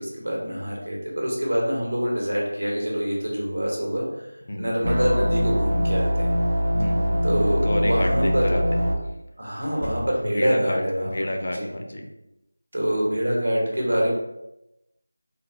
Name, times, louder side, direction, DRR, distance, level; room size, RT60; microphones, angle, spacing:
voice 1, 0.0-4.3 4.6-6.3 7.2-8.6 9.4-11.7 12.7-14.1, equal, 85° right, -3 dB, 1.2 m, -25 dB
sound 1, 4.8-8.9, equal, 65° right, 0.5 m, -23 dB
voice 2, 6.7-7.2 7.7-8.9 10.3-12.0, left 1 dB, 50° left, 3 dB, 0.5 m, -29 dB
sound 2, 7.3-7.5 9.6-10.6, equal, 70° left, 0.9 m, -37 dB
3.8 x 2.1 x 2.8 m, 0.90 s
figure-of-eight pair, 170°, 0 cm